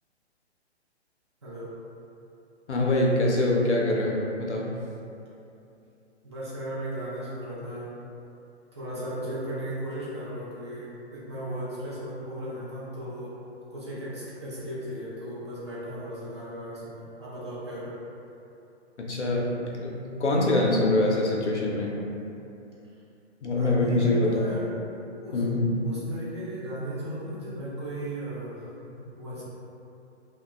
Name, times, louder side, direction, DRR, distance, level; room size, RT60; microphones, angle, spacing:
voice 1, 1.4-1.7 6.2-7.9 8.7-13.4 13.7-18.0 23.6-24.7 25.2-25.4 25.8-29.4, right 1 dB, 25° right, -9 dB, 0.4 m, -36 dB
voice 2, 2.7-4.7 19.0-21.9 23.4-24.5 25.3-25.7, left 2 dB, 85° left, -3 dB, 0.6 m, -24 dB
2.8 x 2.1 x 2.2 m, 2.8 s
figure-of-eight pair, 125°, 34 cm